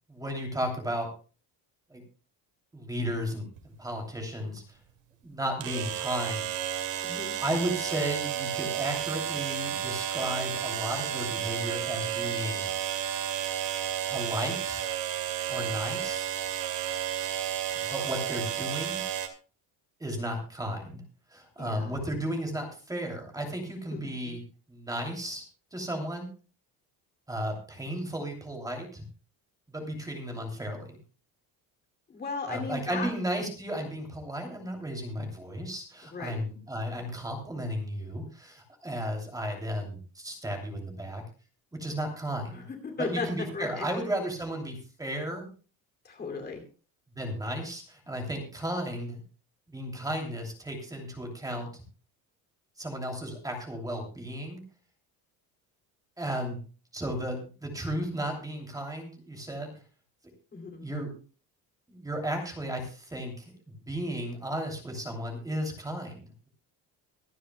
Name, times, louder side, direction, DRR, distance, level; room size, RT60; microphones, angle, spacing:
voice 1, 0.1-1.1 1.9-2.0 2.7-4.8 5.2-6.5 7.4-12.7 14.1-14.8 15.5-16.3 17.7-19.0 20.0-21.0 21.3-24.4 24.7-25.4 25.7-26.3 27.3-29.0 29.7-31.0 32.5-41.2 41.7-42.6 43.0-45.5 47.2-49.2 49.7-51.8 52.8-54.6 56.2-56.6 56.9-59.7 60.8-61.1 61.9-66.5, equal, 10° right, 2 dB, 2.8 m, -34 dB
sound 1, 3.6-3.7 5.6-19.3, right 10 dB, 65° right, 2.6 m, -32 dB
voice 2, 21.6-21.9 23.9-24.4 32.1-33.1 36.1-36.4 42.5-43.9 46.0-46.6 60.5-60.8, left 4 dB, 25° left, 3 dB, 2.6 m, -36 dB
24.5 x 9.5 x 2.2 m, 0.36 s
cardioid pair, 165°, 39 cm